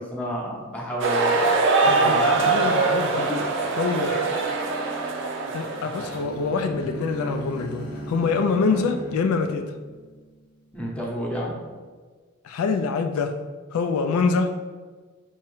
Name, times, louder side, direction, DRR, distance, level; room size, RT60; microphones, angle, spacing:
voice 1, 0.0-1.5 1.8-2.5 3.1-3.4 8.7-8.9 10.7-11.5, equal, 5° left, -4 dB, 0.8 m, -31 dB
sound 1, 1.0-6.2, right 3 dB, 60° right, 0.5 m, -23 dB
voice 2, 1.8-3.3 3.8-4.2 5.5-9.7 12.4-13.4 13.7-14.6, left 4 dB, 80° left, 6 dB, 0.3 m, -25 dB
sound 2, 1.8-9.5, right 1 dB, 25° right, 0.8 m, -41 dB
Bowed string instrument, 5.8-10.8, right 1 dB, 60° left, 0.7 m, -39 dB
4.5 x 2.9 x 3.1 m, 1.4 s
head